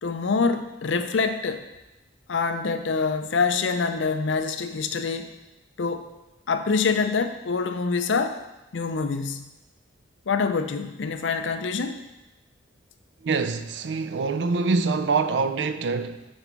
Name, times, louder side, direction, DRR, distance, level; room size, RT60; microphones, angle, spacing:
voice 1, 0.0-1.7 2.3-5.3 5.8-6.1 6.5-8.4 8.7-9.5 10.3-12.0, left 4 dB, 75° left, 0.5 m, -25 dB
voice 2, 13.2-16.3, right 4 dB, 65° right, 0.4 m, -25 dB
5.4 x 4.4 x 6.0 m
head